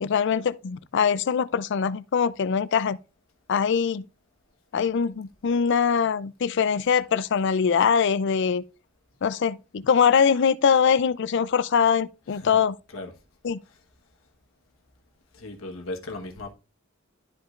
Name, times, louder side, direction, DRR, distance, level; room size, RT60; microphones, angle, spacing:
voice 1, 0.0-3.0 3.5-4.0 4.7-8.6 9.2-12.7 13.4-13.6, left 6 dB, 60° left, 0.4 m, -22 dB
voice 2, 12.3-12.6 12.9-13.2 13.6-13.8 15.3-16.5, left 2 dB, 85° left, 1.3 m, -37 dB
12.0 x 5.1 x 2.5 m
head